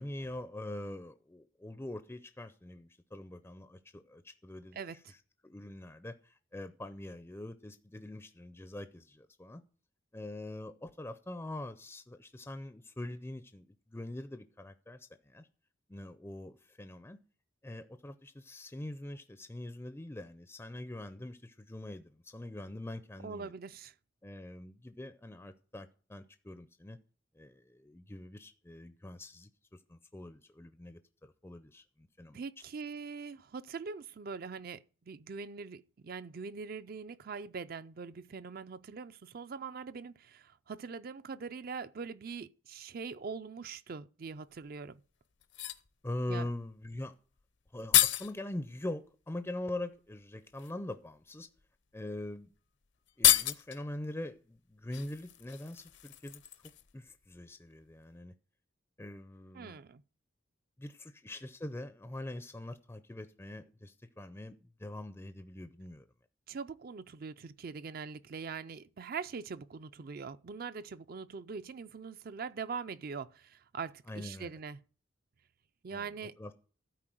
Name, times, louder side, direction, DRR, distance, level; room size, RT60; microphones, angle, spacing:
voice 1, 0.0-4.8 5.4-9.6 10.1-15.5 15.9-17.2 17.6-23.5 24.2-27.0 27.4-32.4 46.0-47.1 47.7-51.5 51.9-52.5 53.2-56.4 56.9-58.3 59.0-59.8 60.8-66.1 74.1-74.5 75.9-76.1 76.4-76.6, left 1 dB, 10° left, 0.4 m, -43 dB
voice 2, 4.7-5.1 23.2-23.9 32.3-45.0 46.3-46.5 59.5-60.0 66.5-74.8 75.8-76.4, right 5 dB, 50° right, 0.4 m, -42 dB
sound 1, 44.5-44.6 45.4-45.9 47.4-47.5 47.7-48.3 49.8-49.9 50.5-50.7 51.6-51.7 52.0-52.2 52.5-52.6 53.1-53.8 54.9-57.0 57.2-57.4, left 14 dB, 65° left, 0.7 m, -29 dB
12.5 x 4.6 x 7.6 m
head